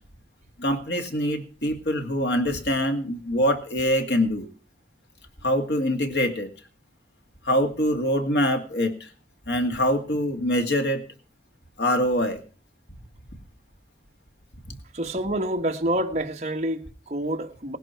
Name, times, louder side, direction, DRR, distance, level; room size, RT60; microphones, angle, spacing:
voice 1, 0.6-4.5 5.4-6.5 7.4-9.1 9.5-11.0 11.8-12.4, equal, 65° left, 2.4 m, -24 dB
voice 2, 14.9-17.8, right 1 dB, 40° right, 1.4 m, -27 dB
18.5 x 11.5 x 4.6 m
head